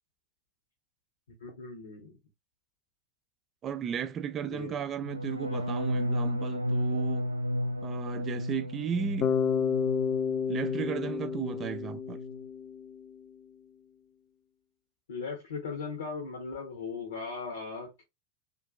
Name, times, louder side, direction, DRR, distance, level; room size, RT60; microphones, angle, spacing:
voice 1, 1.4-2.2 4.5-4.8 15.1-18.0, left 4 dB, 65° left, 1.0 m, -38 dB
voice 2, 3.6-7.2 7.8-9.3 10.5-12.2, right 8 dB, 30° right, 0.4 m, -35 dB
sound 1, 5.0-10.9 11.2-11.7 12.0-12.4, equal, 90° right, 0.4 m, -33 dB
Bass guitar, 9.2-13.2, left 7 dB, 40° left, 0.4 m, -31 dB
3.7 x 2.5 x 2.5 m
figure-of-eight pair, 85°, 0 cm